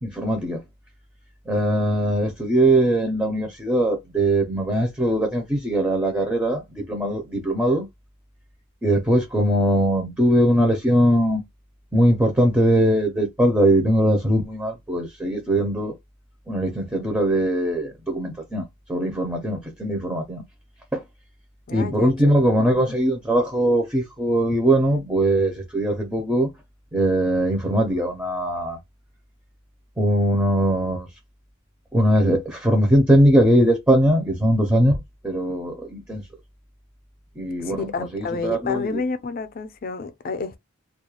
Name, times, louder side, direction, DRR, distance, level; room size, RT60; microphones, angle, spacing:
voice 1, 0.0-0.6 1.4-7.9 8.8-11.4 11.9-16.0 16.5-20.4 20.9-21.0 21.7-26.5 26.9-28.8 30.0-31.2 31.9-36.2 37.3-39.0, right 1 dB, 10° right, 0.5 m, -21 dB
voice 2, 21.7-22.4 22.7-22.9 37.6-40.6, left 4 dB, 40° left, 0.4 m, -30 dB
2.3 x 2.1 x 2.9 m
head